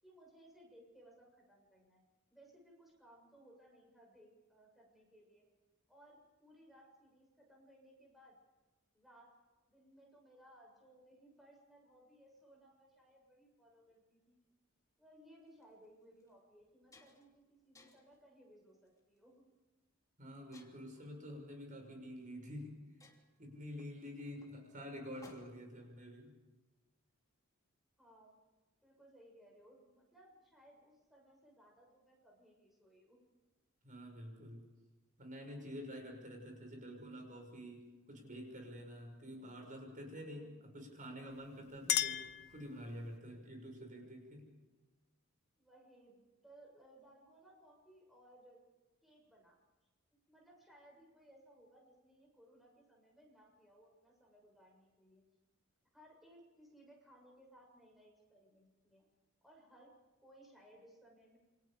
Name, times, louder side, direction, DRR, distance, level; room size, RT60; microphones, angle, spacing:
voice 1, 0.0-2.0 2.3-5.4 5.9-8.3 8.9-9.4 9.7-14.4 15.0-19.5 24.1-24.2 28.0-28.4 28.8-33.3 40.3-40.6 45.6-48.6 49.0-49.6 50.3-55.2 55.9-59.0 59.4-60.0 60.2-61.4, right 1 dB, ahead, -1 dB, 7.0 m, -63 dB
sound 1, 15.5-15.6 16.2-16.3 16.6-17.4 17.7-18.2 18.9-19.2 20.5-21.1 22.2-22.3 22.6-22.7 23.0-25.8, left 2 dB, 15° left, 3.1 m, -63 dB
voice 2, 20.2-22.8 23.4-26.3 33.8-34.7 35.2-40.4 40.7-44.5, equal, 40° right, 3 dB, 6.4 m, -48 dB
Chink clink, 41.3-43.2, left 12 dB, 50° left, 0.8 m, -38 dB
29.0 x 26.5 x 5.1 m, 1.2 s
head